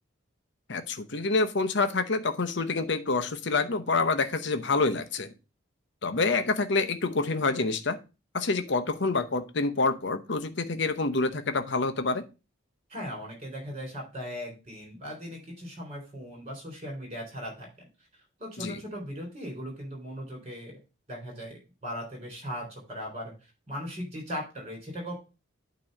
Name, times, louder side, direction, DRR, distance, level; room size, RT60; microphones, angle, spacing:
voice 1, 0.7-5.3 6.0-8.0 8.3-12.2 18.6-18.8, left 3 dB, 55° left, 9 dB, 0.8 m, -27 dB
voice 2, 12.9-17.7 18.4-20.8 21.1-23.3 23.7-25.1, equal, 30° right, 0 dB, 3.5 m, -38 dB
8.8 x 3.0 x 6.4 m, 0.30 s
head